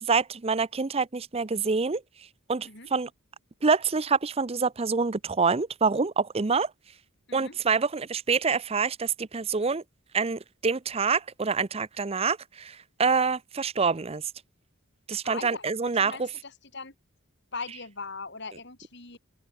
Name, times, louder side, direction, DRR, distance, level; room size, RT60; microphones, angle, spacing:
voice 1, 0.0-2.0 2.5-3.1 3.6-6.7 7.3-9.8 10.1-14.2 15.1-16.3, right 5 dB, 30° right, 0.6 m, -26 dB
voice 2, 15.2-16.9 17.5-19.2, left 4 dB, 55° left, 7.5 m, -40 dB
open air
head